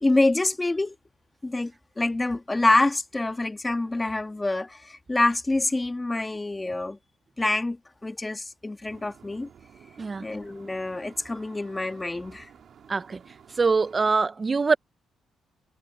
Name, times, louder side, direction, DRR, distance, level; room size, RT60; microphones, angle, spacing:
voice 1, 0.0-1.0 1.4-7.0 7.4-9.5 10.2-12.5, left 2 dB, 15° left, 1.5 m, -26 dB
sound 1, 8.9-14.1, right 8 dB, 60° right, 4.1 m, -52 dB
voice 2, 12.9-13.2 13.5-14.8, right 4 dB, 30° right, 0.5 m, -23 dB
cardioid pair, 90°, 0 cm